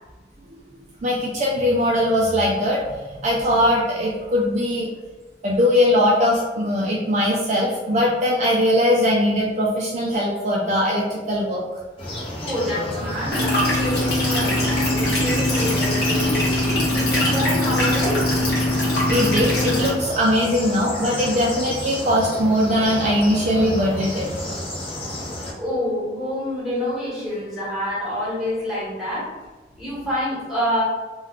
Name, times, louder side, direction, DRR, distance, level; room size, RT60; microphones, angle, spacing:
voice 1, 1.0-2.8 3.2-4.9 5.4-11.6 19.1-24.3, left 1 dB, 40° right, -4 dB, 0.4 m, -20 dB
sound 1, 12.0-25.5, left 1 dB, 30° left, 0.6 m, -31 dB
voice 2, 12.4-18.2 25.6-29.4 29.8-30.8, equal, 5° right, -8 dB, 1.1 m, -27 dB
sound 2, 13.3-19.9, left 1 dB, 60° left, 1.0 m, -21 dB
2.3 x 2.2 x 3.4 m, 1.3 s
head